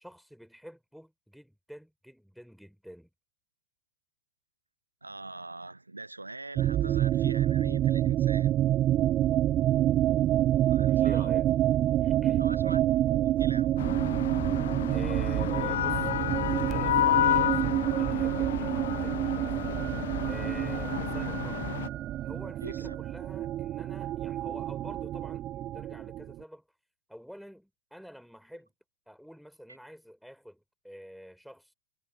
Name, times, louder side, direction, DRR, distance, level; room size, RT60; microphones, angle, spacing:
voice 1, 0.0-3.1 10.9-11.5 12.0-12.5 14.9-16.1 16.7-19.5 20.3-21.7 22.2-26.6 27.1-28.7 29.1-31.7, equal, ahead, 5.2 m, -47 dB
voice 2, 5.0-8.5 10.7-11.3 12.4-12.8 13.1-13.9 20.9-21.0 22.6-23.0, right 2 dB, 80° right, 0.7 m, -42 dB
sound 1, 6.6-26.4, right 13 dB, 30° right, 0.4 m, -27 dB
sound 2, 13.8-21.9, left 12 dB, 60° left, 0.5 m, -31 dB
figure-of-eight pair, 90°, 0 cm